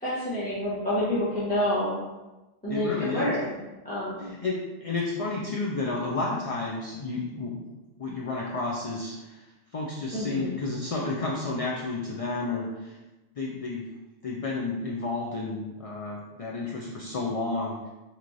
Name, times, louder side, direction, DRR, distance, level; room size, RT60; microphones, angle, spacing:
voice 1, 0.0-2.0 2.6-3.5 3.8-4.3 10.1-10.5, left 1 dB, 10° left, -11 dB, 1.0 m, -28 dB
voice 2, 2.7-3.4 4.2-7.5 8.0-9.4 9.7-12.9 13.4-13.9 14.2-17.8, left 3 dB, 65° left, -3 dB, 0.3 m, -31 dB
4.5 x 2.8 x 2.5 m, 1.1 s
omnidirectional pair, 1.1 m